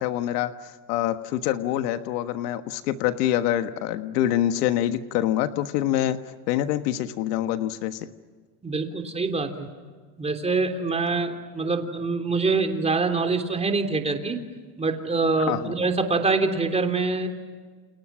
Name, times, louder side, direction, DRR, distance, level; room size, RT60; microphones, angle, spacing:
voice 1, 0.0-6.2 6.5-8.1 15.5-15.7, left 12 dB, 85° left, 9 dB, 1.6 m, -25 dB
voice 2, 8.6-9.7 10.2-14.4 14.8-17.3, right 3 dB, 15° right, 6 dB, 3.3 m, -25 dB
29.5 x 29.5 x 6.2 m, 1.5 s
supercardioid pair, 135°, 46 cm